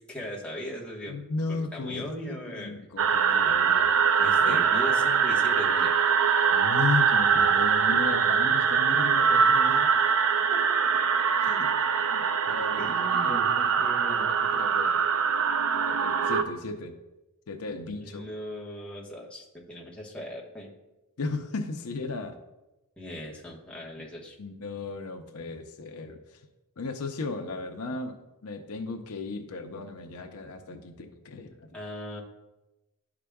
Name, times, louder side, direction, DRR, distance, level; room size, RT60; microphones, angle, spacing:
voice 1, 0.1-1.2 1.5-2.7 3.4-3.6 4.2-5.9 10.5-11.0 11.4-11.8 12.7-13.5 13.8-14.4 18.0-20.7 23.0-24.4 31.7-32.2, equal, 5° left, -4 dB, 1.2 m, -39 dB
voice 2, 1.1-3.9 4.4-4.6 6.5-9.9 11.4-11.5 12.1-12.8 13.1-15.0 15.7-17.0 17.5-18.2 21.2-22.4 24.4-26.4 26.8-31.8, left 3 dB, 70° left, 5 dB, 0.6 m, -35 dB
sound 1, 3.0-16.4, right 6 dB, 65° right, 0.5 m, -23 dB
11.5 x 4.9 x 2.3 m, 1.0 s
head